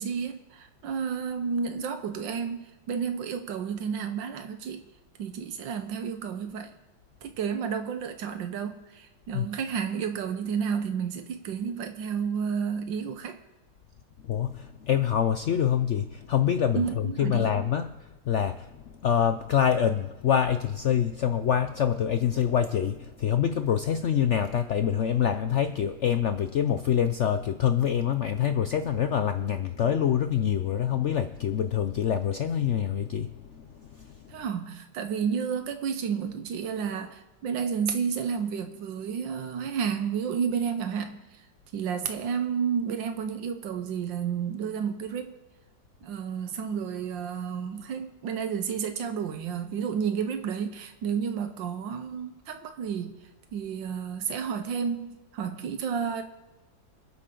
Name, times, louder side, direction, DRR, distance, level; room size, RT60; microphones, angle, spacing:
voice 1, 0.0-4.8 5.2-6.7 7.2-13.4 16.7-17.6 34.3-41.4 41.7-45.4 46.0-53.2 53.5-56.2, right 7 dB, 85° right, 7 dB, 1.7 m, -31 dB
voice 2, 14.3-17.9 18.3-18.8 19.0-33.7 34.0-34.1, left 9 dB, 85° left, 9 dB, 0.6 m, -25 dB
26.5 x 8.9 x 3.9 m, 1.1 s
omnidirectional pair, 2.0 m